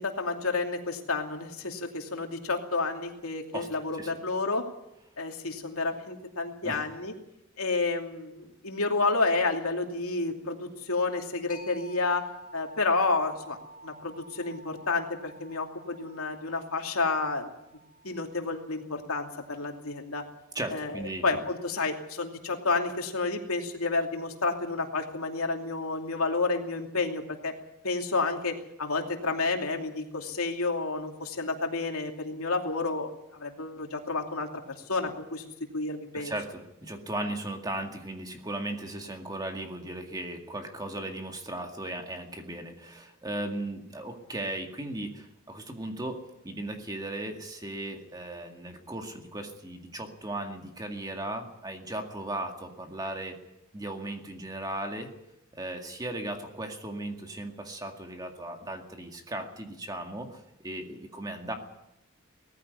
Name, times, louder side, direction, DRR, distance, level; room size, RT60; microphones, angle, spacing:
voice 1, 0.0-4.7 5.2-7.1 7.6-12.3 12.5-13.6 13.8-17.5 18.0-20.2 20.7-27.5 27.8-33.1 33.4-34.5 34.9-35.4 35.7-36.3, left 3 dB, 85° left, 3 dB, 2.7 m, -30 dB
sound 1, 11.5-20.9, right 1 dB, 40° left, 5.3 m, -51 dB
voice 2, 20.5-21.4 35.0-35.1 36.1-53.4 53.7-55.1 55.5-61.5, right 1 dB, 20° right, 4 dB, 2.0 m, -37 dB
18.5 x 15.0 x 9.6 m, 0.86 s
head